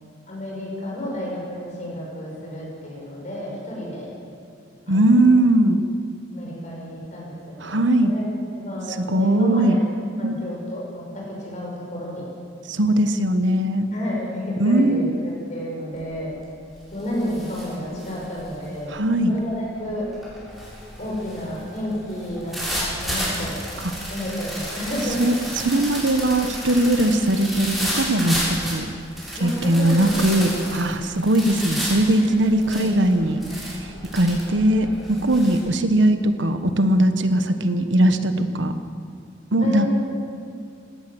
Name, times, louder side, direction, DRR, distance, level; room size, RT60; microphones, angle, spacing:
voice 1, 0.3-4.1 4.9-5.3 6.3-8.3 8.5-9.8 10.2-12.3 13.9-16.3 16.9-19.0 19.3-20.1 21.0-22.5 22.8-23.5 24.1-25.2 29.4-30.7 32.2-33.0 39.5-39.9, equal, 40° left, -3 dB, 5.9 m, -31 dB
voice 2, 4.9-5.8 7.6-8.1 9.0-9.8 10.2-10.4 12.7-13.9 14.6-15.2 18.9-19.3 23.8-23.9 25.2-25.3 25.6-28.9 29.4-33.9 34.1-38.7 39.5-39.9, right 1 dB, 80° right, 9 dB, 1.3 m, -20 dB
sound 1, 16.0-16.3 16.7-35.6, equal, ahead, 6.8 m, -32 dB
19.0 x 17.5 x 7.9 m, 2.3 s
head